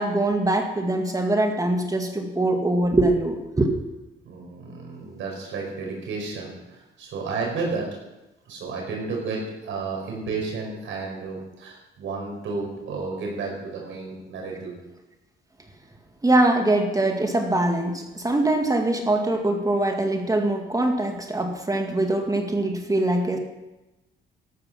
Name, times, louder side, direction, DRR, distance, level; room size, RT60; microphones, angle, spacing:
voice 1, 0.0-3.8 16.2-23.4, right 2 dB, 15° right, 3 dB, 2.1 m, -23 dB
voice 2, 4.2-7.9 8.5-14.8, right 4 dB, 75° right, -1 dB, 5.1 m, -32 dB
13.5 x 12.5 x 6.0 m, 1.0 s
cardioid pair, 90°, 20 cm